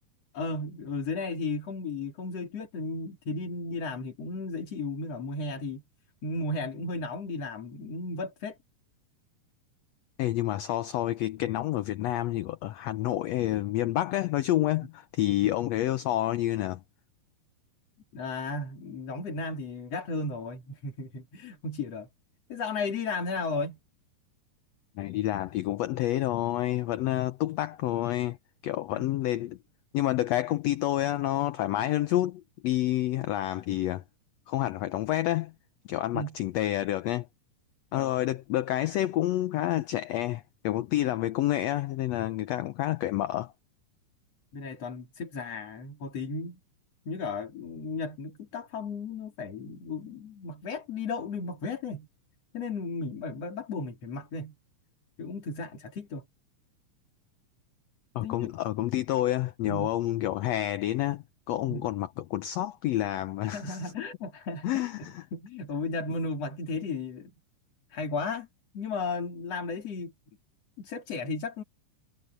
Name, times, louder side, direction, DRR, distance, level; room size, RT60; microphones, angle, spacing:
voice 1, 0.3-5.8 6.2-8.6 18.1-22.1 22.5-23.8 28.9-29.1 36.1-36.3 37.9-38.1 42.5-42.7 44.5-46.6 47.1-52.1 52.5-54.5 55.2-56.2 58.2-58.5 59.7-59.9 61.6-61.9 63.5-64.8 65.3-67.3 67.9-68.5 68.7-70.1 70.8-71.6, left 3 dB, 50° left, 4.2 m, -34 dB
voice 2, 10.2-16.8 25.0-28.4 28.6-29.6 29.9-34.0 34.5-35.5 35.9-37.3 37.9-43.5 58.1-63.8 64.6-65.2, left 14 dB, 85° left, 1.4 m, -29 dB
omnidirectional pair, 3.8 m